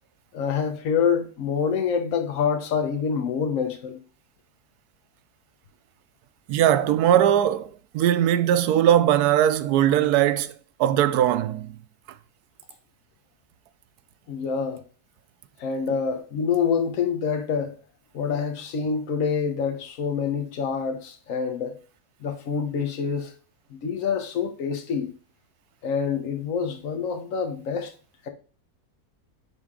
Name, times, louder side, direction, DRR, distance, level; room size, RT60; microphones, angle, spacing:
voice 1, 0.3-4.0 14.3-14.8 15.6-17.7 18.1-21.8 22.2-23.3 23.7-25.1 25.8-27.9, left 6 dB, 65° left, 1.3 m, -26 dB
voice 2, 6.5-10.5 10.8-11.8, right 11 dB, 90° right, 1.1 m, -20 dB
9.5 x 3.5 x 3.7 m
omnidirectional pair, 1.6 m